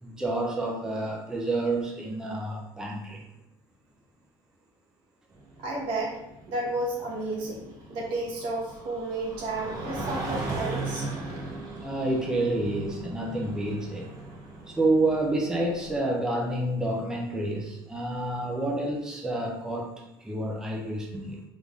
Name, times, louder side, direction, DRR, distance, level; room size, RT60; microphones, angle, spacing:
voice 1, 0.0-3.2 11.8-14.1 14.7-19.9 20.2-21.4, right 2 dB, 5° right, -1 dB, 0.4 m, -29 dB
sound 1, 5.4-16.0, right 2 dB, 40° right, 0.7 m, -38 dB
voice 2, 5.6-6.2 6.5-11.1, right 2 dB, 75° right, -3 dB, 1.1 m, -32 dB
3.5 x 2.5 x 3.2 m, 0.85 s
cardioid pair, 155°, 9 cm